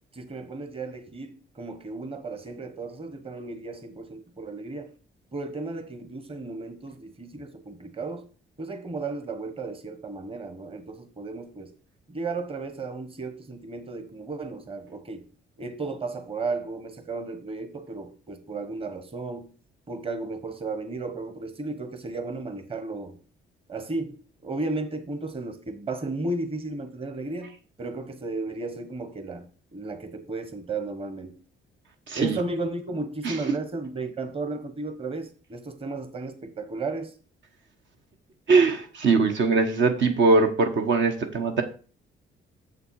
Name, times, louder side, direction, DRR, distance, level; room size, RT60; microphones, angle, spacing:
voice 1, 0.1-4.9 5.3-8.3 8.6-11.7 12.1-15.3 15.6-19.5 19.9-23.2 23.7-27.5 27.8-31.4 32.1-37.1, right 3 dB, 30° right, 1.3 m, -34 dB
voice 2, 32.1-32.4 33.2-33.3 38.5-41.6, right 4 dB, 65° right, 1.3 m, -21 dB
6.9 x 6.7 x 4.7 m
cardioid pair, 90°, 20 cm